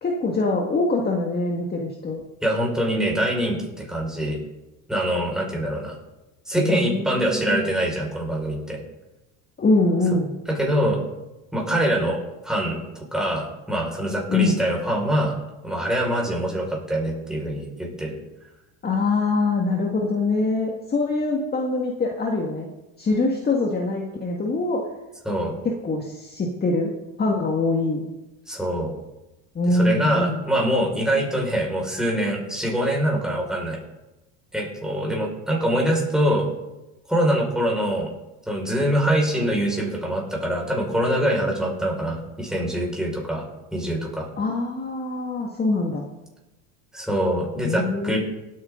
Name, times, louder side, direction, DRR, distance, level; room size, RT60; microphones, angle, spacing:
voice 1, 0.0-2.2 6.5-7.7 9.6-10.3 14.3-14.6 18.8-22.7 23.0-24.8 25.6-28.1 29.6-30.4 44.4-46.0 47.6-48.2, left 3 dB, 25° left, 0 dB, 1.9 m, -24 dB
voice 2, 2.4-4.4 4.9-6.0 6.5-8.8 10.5-11.0 11.5-15.3 15.6-18.2 25.3-25.6 28.5-28.9 29.7-33.8 34.5-36.5 37.1-38.1 38.5-43.5 43.7-44.3 46.9-48.2, right 1 dB, ahead, -2 dB, 5.3 m, -24 dB
18.5 x 9.4 x 3.8 m, 1.0 s
supercardioid pair, 105°, 39 cm